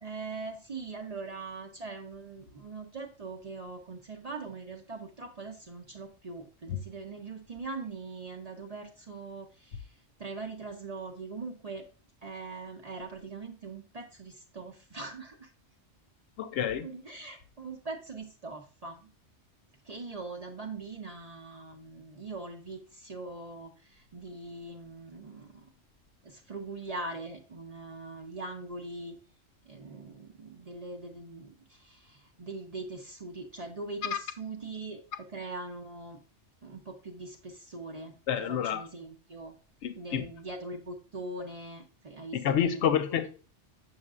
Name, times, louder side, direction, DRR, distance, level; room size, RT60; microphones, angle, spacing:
voice 1, 0.0-11.8 12.2-15.5 16.8-19.1 19.8-25.6 26.2-29.1 29.7-35.0 35.3-36.2 36.6-38.1 38.5-39.5 40.0-43.3, right 3 dB, 40° right, 0.6 m, -42 dB
voice 2, 16.4-16.9 34.1-34.2 38.3-38.8 39.8-40.3 42.3-43.3, left 9 dB, 75° left, 0.9 m, -28 dB
6.4 x 6.3 x 2.4 m
omnidirectional pair, 1.2 m